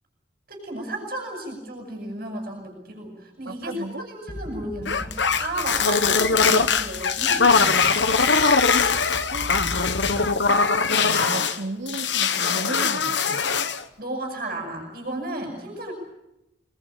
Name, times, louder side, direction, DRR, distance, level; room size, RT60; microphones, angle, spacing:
voice 1, 0.5-8.0 14.0-15.9, right 1 dB, 45° right, 0 dB, 7.9 m, -34 dB
voice 2, 3.4-4.1 9.3-9.5 11.0-13.5, right 2 dB, 70° right, 4 dB, 2.8 m, -34 dB
sound 1, 4.3-10.7, equal, 30° left, 1.9 m, -39 dB
sound 2, 4.9-11.6 11.9-13.8, left 5 dB, 65° left, 1.3 m, -21 dB
28.0 x 21.0 x 8.8 m, 0.88 s
head